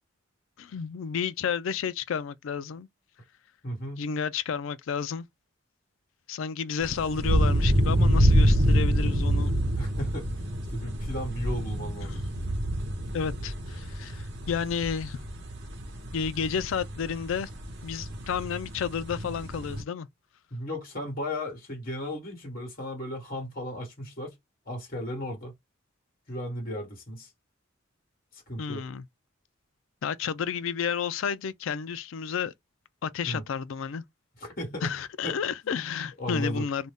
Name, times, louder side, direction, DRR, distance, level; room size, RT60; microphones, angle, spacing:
voice 1, 0.6-2.9 4.0-5.3 6.3-9.6 12.1-12.2 13.1-15.2 16.1-17.5 17.8-20.1 28.6-29.0 30.0-32.5 33.0-34.0 34.8-36.9, left 6 dB, 70° left, 0.4 m, -31 dB
voice 2, 3.6-4.0 9.8-10.3 10.7-12.2 20.5-24.3 24.6-25.5 26.3-27.3 28.3-28.8 33.2-33.4 34.4-34.9 35.2-35.4 35.6-35.8 36.2-36.7, left 1 dB, 45° left, 1.3 m, -35 dB
sound 1, 6.8-19.8, equal, 55° right, 0.9 m, -27 dB
2.6 x 2.2 x 3.4 m
head